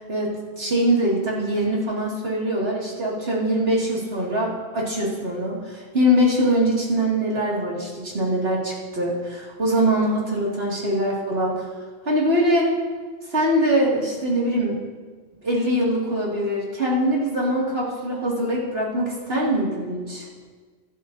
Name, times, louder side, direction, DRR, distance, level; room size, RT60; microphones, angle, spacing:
voice 1, 0.1-11.6 12.0-12.7 13.3-14.8 15.4-20.3, equal, 50° right, -4 dB, 2.8 m, -23 dB
23.5 x 11.0 x 2.8 m, 1.5 s
omnidirectional pair, 1.3 m